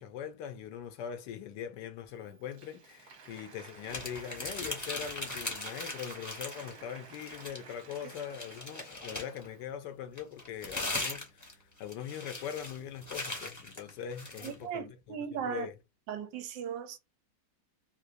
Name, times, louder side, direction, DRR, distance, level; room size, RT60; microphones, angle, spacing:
voice 1, 0.0-15.8, left 9 dB, 75° left, 1.1 m, -42 dB
Applause, 2.1-9.8, right 5 dB, 55° right, 1.2 m, -52 dB
sound 1, 3.9-6.8 7.1-9.4 10.2-14.5, left 2 dB, 15° left, 0.7 m, -39 dB
voice 2, 14.4-15.7 16.1-17.0, right 8 dB, 75° right, 1.2 m, -37 dB
3.8 x 2.5 x 2.5 m
omnidirectional pair, 2.0 m